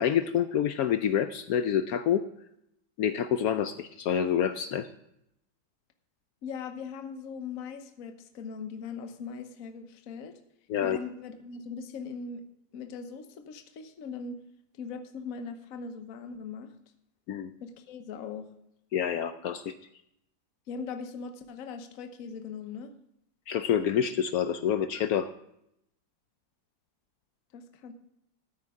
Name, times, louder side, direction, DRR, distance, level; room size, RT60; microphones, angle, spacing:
voice 1, 0.0-2.2 3.0-4.9 10.7-11.0 17.3-17.5 18.9-19.7 23.5-25.3, left 9 dB, 80° left, 10 dB, 0.8 m, -27 dB
voice 2, 6.4-10.3 10.8-12.4 12.7-14.4 14.8-16.7 17.6-18.5 20.7-22.9 27.5-27.9, left 5 dB, 55° left, 7 dB, 1.2 m, -40 dB
13.5 x 9.5 x 3.6 m, 0.79 s
omnidirectional pair, 2.1 m